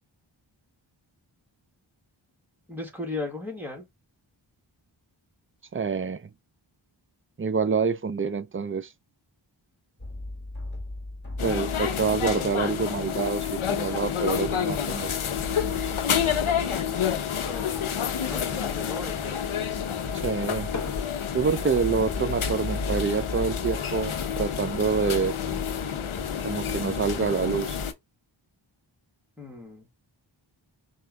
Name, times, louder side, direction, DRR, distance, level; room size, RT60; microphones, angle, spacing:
voice 1, 2.7-3.9 17.4-17.9 18.2-19.8 29.4-29.9, left 2 dB, 5° right, 1.5 m, -37 dB
voice 2, 5.7-6.3 7.4-8.9 11.4-15.1 20.2-20.7 21.3-25.3 26.4-27.8, right 5 dB, 25° right, 0.5 m, -27 dB
sound 1, 10.0-27.2, left 1 dB, 20° left, 1.9 m, -41 dB
sound 2, 11.4-27.9, left 8 dB, 80° left, 0.8 m, -29 dB
sound 3, 16.5-17.7 18.1-18.2 18.9-21.5 22.3-22.6, left 4 dB, 35° left, 0.7 m, -42 dB
4.4 x 2.5 x 3.3 m
wide cardioid pair, 55°, 48 cm